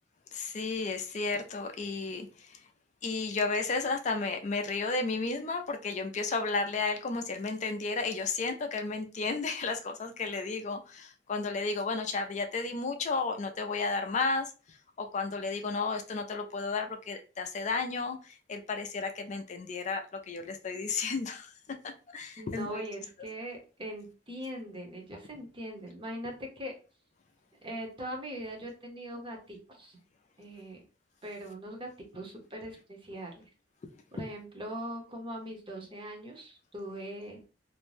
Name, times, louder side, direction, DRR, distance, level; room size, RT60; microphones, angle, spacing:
voice 1, 0.3-2.6 3.0-14.5 15.0-21.5 21.8-22.9, left 4 dB, 40° left, 6 dB, 0.4 m, -33 dB
voice 2, 22.4-26.7 27.6-30.0 30.4-30.8 31.2-33.4 34.1-37.4, equal, 30° right, 1 dB, 0.7 m, -41 dB
2.5 x 2.1 x 3.1 m, 0.34 s
head